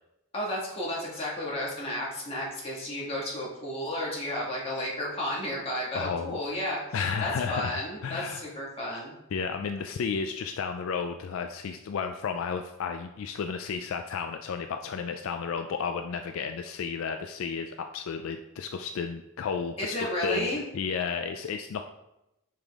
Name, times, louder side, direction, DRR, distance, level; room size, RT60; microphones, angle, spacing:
voice 1, 0.3-9.1 19.8-20.7, left 1 dB, 30° left, -5 dB, 1.7 m, -32 dB
voice 2, 5.9-6.4 6.9-8.4 9.3-20.5 20.7-21.8, left 6 dB, 70° left, 6 dB, 0.3 m, -32 dB
5.5 x 5.0 x 3.5 m, 0.90 s
head